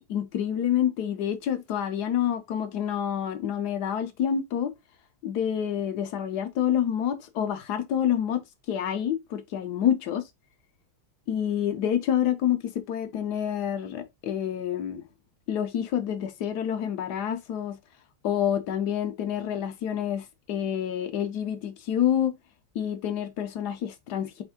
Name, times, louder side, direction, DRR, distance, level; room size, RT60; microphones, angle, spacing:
voice 1, 0.1-4.7 5.2-8.4 8.7-10.2 11.3-15.0 15.5-17.7 18.2-22.3 22.7-24.4, left 9 dB, 70° left, 1.0 m, -28 dB
4.3 x 2.6 x 3.5 m
omnidirectional pair, 2.2 m